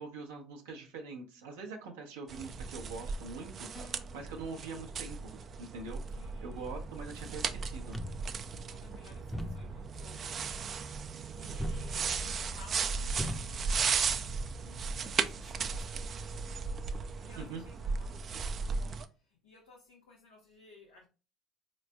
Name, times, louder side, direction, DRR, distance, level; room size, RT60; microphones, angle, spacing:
voice 1, 0.0-5.3 5.6-8.0 17.4-17.6, right 4 dB, 85° right, 0.8 m, -44 dB
sound 1, 2.3-19.1, right 5 dB, 45° right, 0.4 m, -36 dB
sound 2, 3.7-4.3, left 1 dB, 30° left, 1.1 m, -51 dB
voice 2, 6.1-7.3 8.6-21.1, left 4 dB, 90° left, 0.7 m, -58 dB
sound 3, 7.9-15.3, left 1 dB, 5° left, 0.7 m, -44 dB
4.2 x 3.1 x 2.2 m
hypercardioid pair, 65°, 0 cm